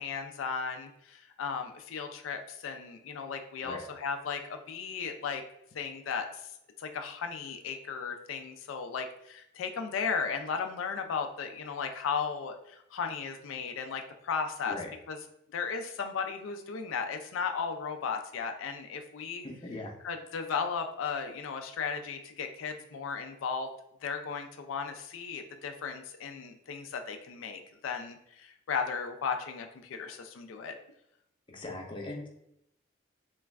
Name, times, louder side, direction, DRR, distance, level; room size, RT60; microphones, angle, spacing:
voice 1, 0.0-5.4 5.7-6.3 6.8-14.8 15.1-15.2 15.5-19.4 20.0-23.7 24.0-30.7, left 6 dB, 85° left, 5 dB, 0.4 m, -35 dB
voice 2, 19.4-20.0 31.5-32.3, left 2 dB, 25° left, 0 dB, 0.5 m, -40 dB
3.0 x 2.3 x 3.3 m, 0.77 s
head